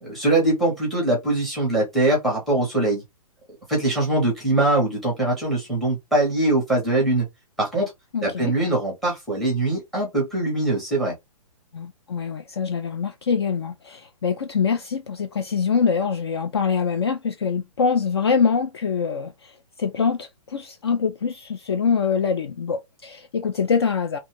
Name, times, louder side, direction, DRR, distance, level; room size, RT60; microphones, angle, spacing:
voice 1, 0.0-3.0 3.7-7.3 7.6-7.9 8.2-11.1, right 2 dB, ahead, 0.7 m, -22 dB
voice 2, 8.1-8.5 11.7-24.2, left 6 dB, 45° left, 0.4 m, -24 dB
2.6 x 2.3 x 2.9 m
hypercardioid pair, 175°, 19 cm